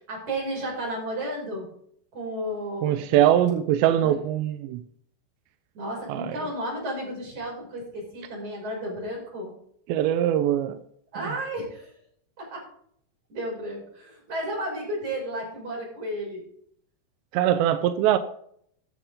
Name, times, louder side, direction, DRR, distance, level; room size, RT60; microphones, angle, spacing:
voice 1, 0.1-1.7 2.1-3.0 4.0-4.2 5.8-9.5 11.1-11.9 12.4-12.6 13.3-16.4, right 1 dB, 40° right, 7.1 m, -33 dB
voice 2, 2.8-4.8 6.1-6.4 9.9-10.8 17.3-18.2, right 11 dB, 90° right, 2.9 m, -22 dB
14.0 x 11.5 x 3.7 m
omnidirectional pair, 5.0 m